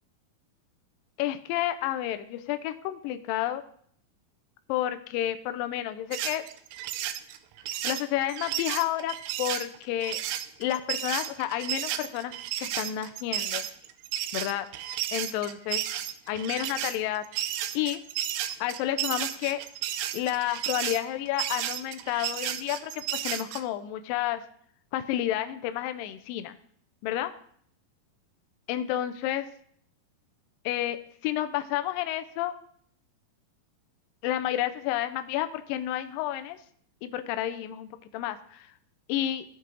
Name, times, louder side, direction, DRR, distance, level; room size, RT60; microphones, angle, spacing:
voice 1, 1.2-3.6 4.7-6.4 7.8-10.2 10.6-12.3 12.6-13.6 14.3-14.7 15.1-15.8 16.3-17.3 17.7-18.0 18.6-19.6 20.1-24.4 24.9-26.5 27.0-27.3 28.7-29.5 30.7-32.5 34.2-36.6 37.0-38.7 39.1-39.5, left 13 dB, 85° left, 10 dB, 2.0 m, -30 dB
sound 1, 6.1-23.6, right 12 dB, 80° right, 2.4 m, -33 dB
15.0 x 5.4 x 3.8 m, 0.62 s
omnidirectional pair, 4.5 m